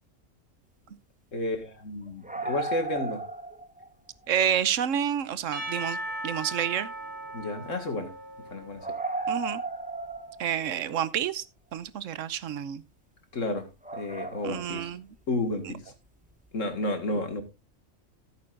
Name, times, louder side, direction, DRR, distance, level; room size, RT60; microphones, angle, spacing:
voice 1, 1.3-3.2 7.3-8.1 8.5-8.9 13.3-13.7 13.9-14.9 15.3-15.8 16.5-17.4, left 2 dB, 70° left, 2.2 m, -31 dB
sound 1, 2.1-3.9 4.2-4.4 5.5-5.6 6.1-6.2 6.4-6.5 8.8-11.0 13.8-14.8 16.3-16.4, right 3 dB, 10° right, 0.6 m, -35 dB
voice 2, 4.3-6.0 6.2-6.9 9.3-9.6 10.4-11.4 11.7-12.8 14.4-15.1 15.6-15.7, right 9 dB, 70° right, 1.1 m, -29 dB
Percussion / Church bell, 5.5-9.7, right 1 dB, 35° right, 2.1 m, -38 dB
15.5 x 8.6 x 2.5 m
omnidirectional pair, 1.4 m